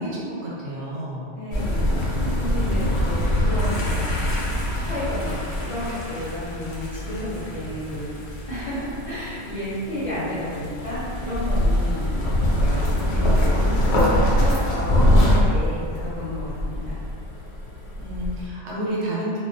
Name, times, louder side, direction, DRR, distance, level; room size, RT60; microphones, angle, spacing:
voice 1, 0.0-1.3 18.0-19.4, right 1 dB, 85° right, -6 dB, 0.9 m, -30 dB
voice 2, 1.3-1.9 2.4-4.0 4.8-8.1 8.5-12.1 12.5-13.8 14.3-17.0, left 1 dB, 45° left, -11 dB, 0.5 m, -31 dB
sound 1, 1.5-18.5, left 1 dB, 80° left, 0.8 m, -23 dB
2.2 x 2.2 x 2.4 m, 2.3 s
omnidirectional pair, 1.1 m